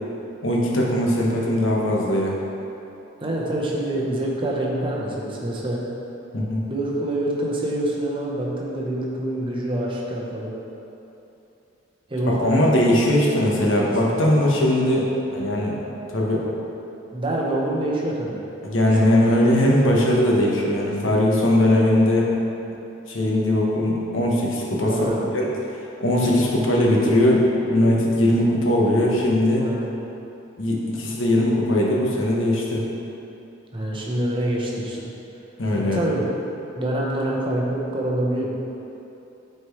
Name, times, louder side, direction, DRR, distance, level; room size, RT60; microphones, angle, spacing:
voice 1, 0.4-2.4 6.3-6.6 12.2-15.8 16.1-16.4 18.6-22.3 23.1-25.5 26.0-29.6 30.6-32.8 35.6-36.0, left 1 dB, 80° left, -3 dB, 1.1 m, -20 dB
voice 2, 3.2-5.8 6.7-10.5 12.1-12.7 13.6-13.7 14.2-14.4 17.1-18.4 19.0-19.3 24.8-25.3 29.6-29.9 33.7-35.1 35.7-36.3 36.8-38.5, right 1 dB, 25° right, -3 dB, 0.9 m, -26 dB
8.1 x 4.4 x 3.2 m, 2.9 s
head